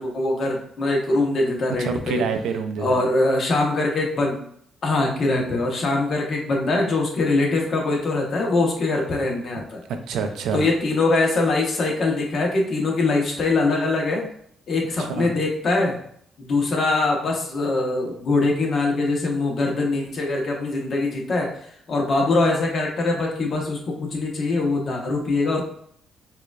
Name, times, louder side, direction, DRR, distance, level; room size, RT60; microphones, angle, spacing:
voice 1, 0.0-2.2 2.8-4.4 4.8-9.8 10.5-14.3 14.7-16.0 16.4-21.5 21.9-25.6, left 2 dB, 55° left, 0 dB, 1.0 m, -22 dB
voice 2, 1.8-3.0 9.9-10.7 15.0-15.3, right 5 dB, 80° right, 6 dB, 0.4 m, -27 dB
4.7 x 2.4 x 2.4 m, 0.65 s
cardioid pair, 90°, 0 cm